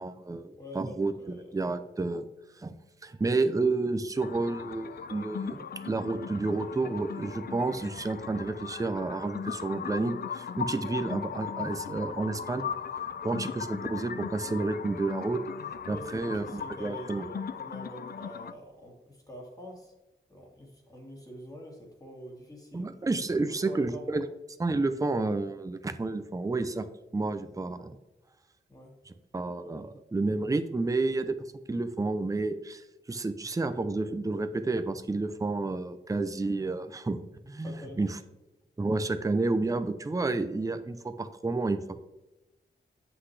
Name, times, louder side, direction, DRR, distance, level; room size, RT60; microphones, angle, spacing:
voice 1, 0.0-2.2 2.6-2.7 3.0-12.6 13.2-15.4 15.9-17.3 22.7-24.2 24.6-26.9 27.1-28.0 29.1-31.4 31.7-37.2 37.5-38.2 38.8-41.8, right 3 dB, 15° right, 9 dB, 0.5 m, -30 dB
voice 2, 0.6-1.5 13.5-13.9 15.8-19.9 20.3-22.9 23.7-24.2 28.7-28.9 37.6-38.1, equal, 20° left, -1 dB, 2.1 m, -45 dB
sound 1, 4.2-18.5, left 7 dB, 50° left, 0.4 m, -38 dB
7.9 x 5.9 x 3.3 m, 1.0 s
wide cardioid pair, 85°, 20 cm